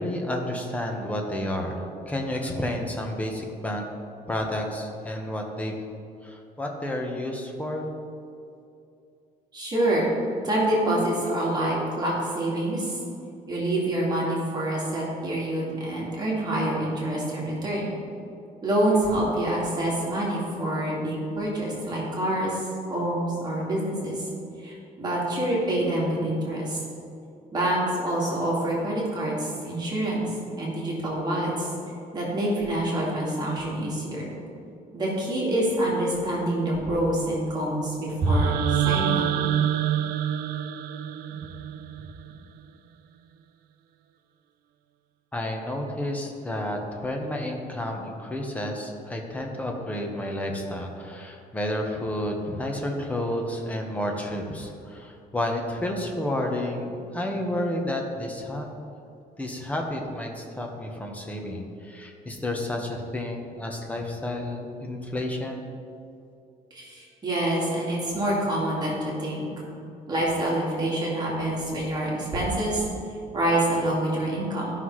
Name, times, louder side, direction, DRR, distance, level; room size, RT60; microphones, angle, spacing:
voice 1, 0.0-3.9 4.3-5.7 6.2-7.8 45.3-58.7 59.4-65.7, left 1 dB, 10° left, 1 dB, 1.0 m, -31 dB
voice 2, 9.5-10.1 10.4-13.0 13.5-17.9 18.6-24.3 24.6-26.8 27.5-31.7 32.1-34.3 34.9-39.2 66.7-69.4 70.1-72.9 73.3-74.7, right 1 dB, 25° right, -5 dB, 2.1 m, -26 dB
sound 1, 38.3-42.3, right 11 dB, 75° right, 0.5 m, -27 dB
13.5 x 5.7 x 3.2 m, 2.6 s
cardioid pair, 145°, 16 cm